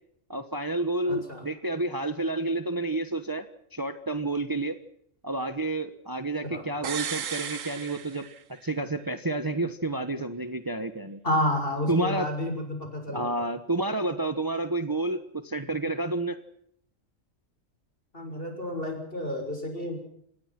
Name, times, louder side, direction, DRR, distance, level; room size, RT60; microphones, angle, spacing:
voice 1, 0.3-3.5 3.7-4.8 5.2-11.2 11.9-12.3 13.1-16.4, right 2 dB, 15° right, 10 dB, 1.1 m, -30 dB
voice 2, 1.1-1.4 6.4-6.7 11.2-13.4 18.1-20.0, left 1 dB, 45° left, 5 dB, 6.7 m, -30 dB
sound 1, 6.8-8.8 9.1-9.2, right 8 dB, 90° right, 1.5 m, -35 dB
27.0 x 19.0 x 6.0 m, 0.71 s
omnidirectional pair, 1.3 m